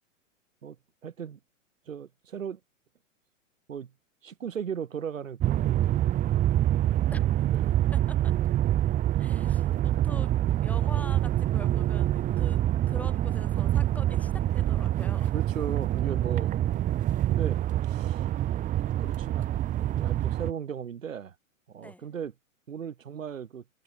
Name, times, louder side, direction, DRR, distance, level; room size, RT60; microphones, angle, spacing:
voice 1, 1.0-1.4 1.9-2.6 3.7-3.9 4.2-6.2 7.5-7.9 15.3-16.8 17.3-18.2 18.8-21.3 21.7-22.3 22.7-23.6, right 8 dB, 75° right, 3.2 m, -37 dB
sound 1, 5.4-20.5, right 12 dB, 20° right, 0.8 m, -26 dB
voice 2, 9.2-12.6 12.9-15.3 21.8-22.1, left 1 dB, 5° left, 2.2 m, -44 dB
figure-of-eight pair, 105°, 39 cm